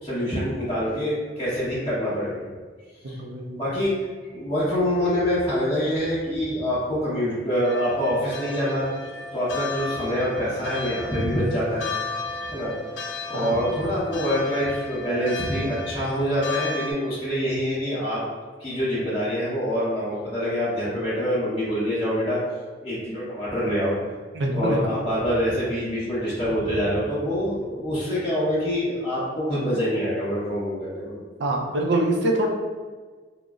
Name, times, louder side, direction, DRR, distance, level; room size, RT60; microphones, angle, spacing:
voice 1, 0.0-2.5 3.1-3.2 3.5-4.1 4.3-8.9 9.3-11.9 12.4-12.7 13.3-18.2 18.6-22.4 22.8-24.0 24.5-31.2, equal, 30° left, -13 dB, 1.0 m, -25 dB
voice 2, 3.0-3.6 13.3-13.6 24.4-24.9 31.4-32.5, right 1 dB, 70° right, 1 dB, 0.4 m, -25 dB
sound 1, 7.6-16.9, left 3 dB, 85° left, 0.4 m, -34 dB
3.7 x 2.0 x 2.4 m, 1.4 s
head